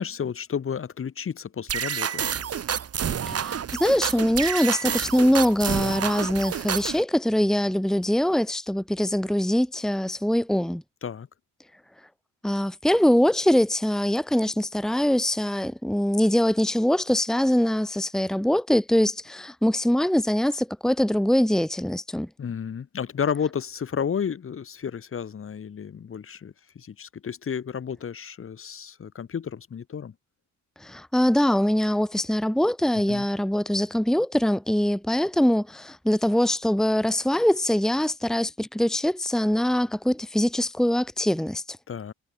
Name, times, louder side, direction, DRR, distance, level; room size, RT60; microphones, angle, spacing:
voice 1, 0.0-2.2 11.0-11.3 22.4-30.1 33.1-33.3 41.9-42.1, left 7 dB, 45° left, 2.5 m, -32 dB
sound 1, 1.7-7.0, right 8 dB, 50° right, 3.8 m, -29 dB
voice 2, 3.3-10.8 12.4-22.3 30.8-41.8, left 1 dB, ahead, 1.4 m, -23 dB
cardioid pair, 90°, 30 cm